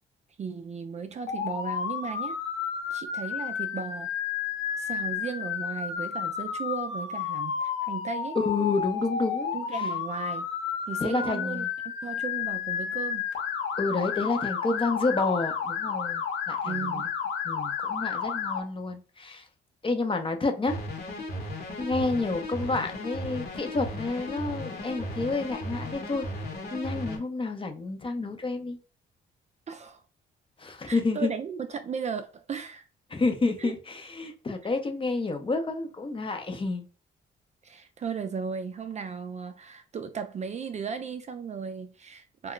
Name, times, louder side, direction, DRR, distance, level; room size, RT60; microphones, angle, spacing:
voice 1, 0.4-2.4 2.9-4.1 4.8-8.4 9.5-10.5 10.9-11.6 12.0-13.3 16.6-17.1 29.7-30.0 30.9-32.9 33.6-33.7 34.6-34.7 37.6-42.5, right 6 dB, 35° right, 0.4 m, -36 dB
Motor vehicle (road) / Siren, 1.3-18.6, left 7 dB, 85° left, 0.7 m, -31 dB
voice 2, 8.3-9.5 11.0-11.7 13.8-17.1 17.4-19.4 19.8-20.8 21.8-26.2 26.7-28.8 30.6-31.3 33.1-36.9, left 3 dB, 25° left, 0.6 m, -29 dB
sound 1, 20.7-27.2, left 1 dB, 55° left, 1.0 m, -36 dB
2.3 x 2.2 x 3.7 m
cardioid pair, 90°, 20 cm